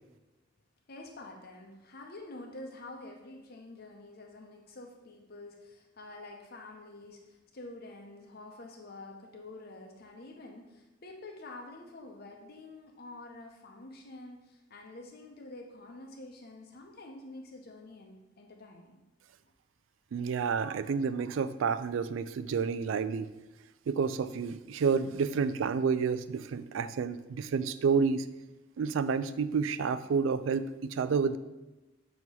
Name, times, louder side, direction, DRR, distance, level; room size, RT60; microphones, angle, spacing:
voice 1, 0.9-19.0, left 2 dB, 55° left, 1 dB, 0.7 m, -48 dB
voice 2, 20.1-23.3 23.9-28.3 28.8-31.4, right 5 dB, 90° right, 14 dB, 0.3 m, -29 dB
6.3 x 3.0 x 5.3 m, 1.1 s
head